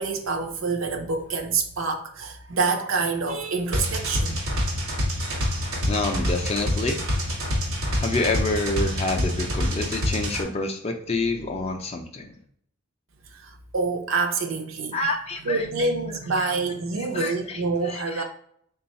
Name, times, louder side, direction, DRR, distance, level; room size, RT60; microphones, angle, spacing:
voice 1, 0.0-4.4 13.3-15.0 15.4-18.2, right 4 dB, 65° right, 0.5 m, -27 dB
sound 1, 3.7-10.4, equal, 85° right, 1.1 m, -26 dB
voice 2, 5.9-7.0 8.0-12.3 14.9-15.9 16.4-16.6 17.1-18.2, left 2 dB, 30° left, 0.4 m, -28 dB
3.3 x 2.3 x 4.1 m
head